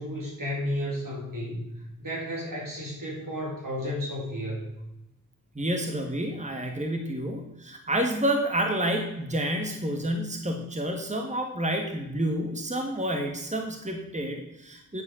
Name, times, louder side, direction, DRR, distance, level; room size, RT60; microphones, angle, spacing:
voice 1, 0.0-1.6 2.0-4.7, equal, 75° right, -4 dB, 4.1 m, -32 dB
voice 2, 5.5-15.0, right 1 dB, 20° right, 3 dB, 1.4 m, -29 dB
9.8 x 4.9 x 6.9 m, 0.86 s
wide cardioid pair, 45°, 33 cm